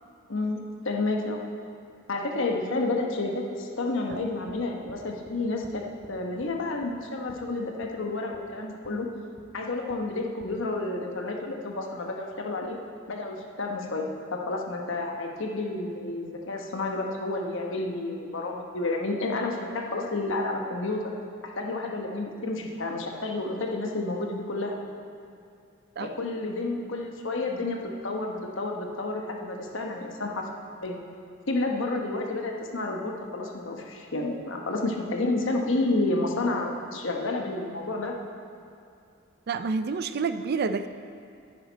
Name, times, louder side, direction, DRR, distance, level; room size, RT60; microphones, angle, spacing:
voice 1, 0.3-1.4 2.1-5.8 6.1-9.1 9.5-12.8 13.1-21.1 21.4-24.8 26.0-27.8 28.0-30.5 30.8-31.0 31.5-38.2, left 2 dB, 65° left, 1 dB, 1.1 m, -30 dB
sound 1, 4.1-4.6 4.9-5.4 5.6-5.8 6.0-6.5 6.8-7.0 7.3-7.4 7.8-8.0 8.3-8.4 8.8-8.9 9.4-9.5 9.9-10.0 10.4-10.5, equal, 15° right, 0.8 m, -50 dB
voice 2, 39.5-40.9, right 4 dB, 50° right, 10 dB, 0.4 m, -28 dB
9.9 x 9.2 x 4.0 m, 2.4 s
head